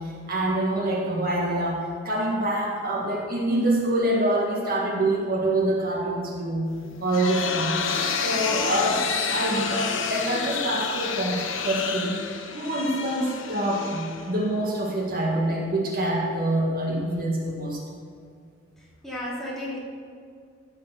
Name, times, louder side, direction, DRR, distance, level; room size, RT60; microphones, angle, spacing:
voice 1, 0.0-6.7 7.0-7.9 8.2-12.2 12.5-17.8, right 1 dB, 50° right, -1 dB, 1.9 m, -26 dB
sound 1, 6.8-14.6, left 5 dB, 80° left, 1.1 m, -30 dB
voice 2, 18.8-19.8, left 1 dB, ahead, -7 dB, 3.0 m, -34 dB
14.5 x 7.5 x 6.6 m, 2.2 s
head